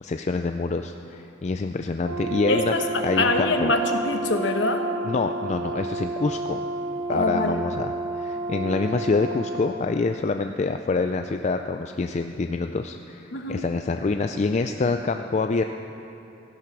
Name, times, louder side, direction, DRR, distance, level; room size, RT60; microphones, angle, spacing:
voice 1, 0.0-2.7 3.0-3.7 5.0-6.6 7.1-15.6, left 3 dB, 35° left, 6 dB, 0.4 m, -26 dB
Brass instrument, 2.0-9.8, right 2 dB, 75° right, 1.0 m, -31 dB
voice 2, 2.5-4.9 7.1-7.6 13.3-13.6, left 2 dB, 60° left, 5 dB, 1.1 m, -24 dB
15.5 x 11.0 x 6.0 m, 3.0 s
head